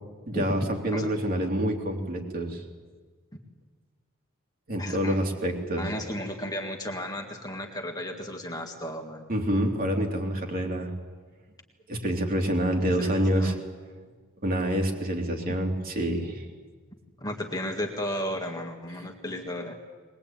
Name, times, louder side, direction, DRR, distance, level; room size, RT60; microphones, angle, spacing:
voice 1, 0.3-2.6 4.7-5.8 9.3-10.9 11.9-13.6 14.4-16.4, equal, 45° right, 2 dB, 3.2 m, -27 dB
voice 2, 4.8-5.2 5.8-9.3 13.0-13.6 17.2-19.8, left 1 dB, 20° left, 2 dB, 1.9 m, -34 dB
21.5 x 20.5 x 9.0 m, 1.5 s
head